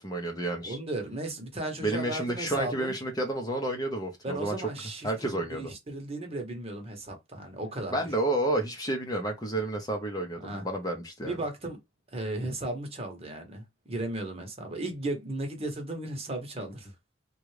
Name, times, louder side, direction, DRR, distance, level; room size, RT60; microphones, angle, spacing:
voice 1, 0.0-0.8 1.8-4.6 5.0-5.7 7.9-11.4, right 1 dB, 20° left, 0.7 m, -30 dB
voice 2, 0.6-2.9 4.2-8.0 10.4-10.7 11.2-11.8 12.1-16.9, right 2 dB, 30° right, 1.0 m, -35 dB
3.6 x 2.3 x 3.2 m
head